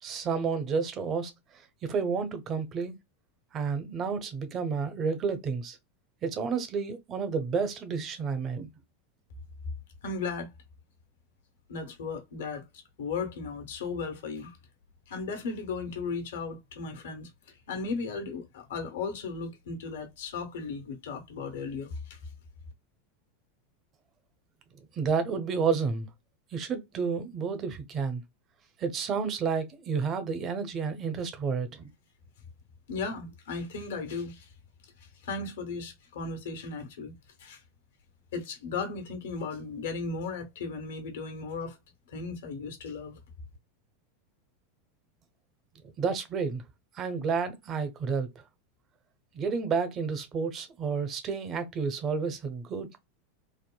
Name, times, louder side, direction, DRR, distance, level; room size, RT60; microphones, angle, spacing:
voice 1, 0.0-1.3 1.8-3.0 3.5-5.8 6.2-8.7 25.0-26.1 26.5-28.2 28.8-31.9 45.8-46.6 46.9-48.3 49.3-52.9, right 5 dB, 35° right, 0.8 m, -30 dB
voice 2, 10.0-10.5 11.7-14.6 15.1-17.3 17.7-22.2 32.9-34.5 35.2-37.1 37.4-37.6 38.3-41.8 42.1-43.2, left 4 dB, 80° left, 1.1 m, -36 dB
3.5 x 2.1 x 2.2 m
hypercardioid pair, 105°, 0 cm